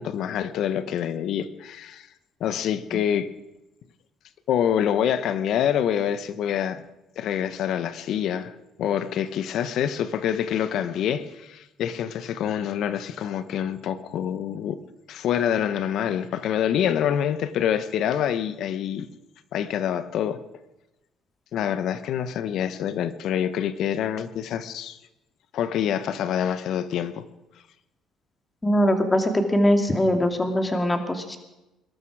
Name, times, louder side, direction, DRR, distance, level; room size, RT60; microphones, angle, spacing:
voice 1, 0.0-2.1 2.4-3.3 4.5-6.8 7.2-14.8 15.1-19.1 19.5-20.4 21.5-25.0 25.5-27.2, left 9 dB, 65° left, 13 dB, 1.1 m, -26 dB
voice 2, 28.6-31.4, equal, 15° left, 6 dB, 2.3 m, -22 dB
21.5 x 12.5 x 4.8 m, 0.97 s
cardioid pair, 95°, 0 cm